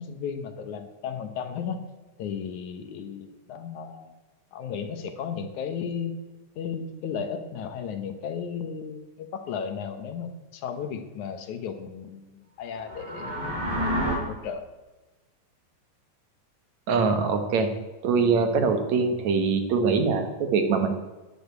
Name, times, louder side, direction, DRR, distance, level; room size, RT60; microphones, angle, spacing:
voice 1, 0.0-1.8 2.2-4.2 4.5-6.2 6.6-13.8 14.2-14.7, left 7 dB, 70° left, 8 dB, 2.4 m, -34 dB
sound 1, 12.8-14.1, equal, 85° right, 5.2 m, -29 dB
voice 2, 16.9-17.7 18.0-20.9, right 5 dB, 65° right, 7 dB, 2.5 m, -23 dB
11.0 x 10.5 x 8.2 m, 1.1 s
omnidirectional pair, 3.7 m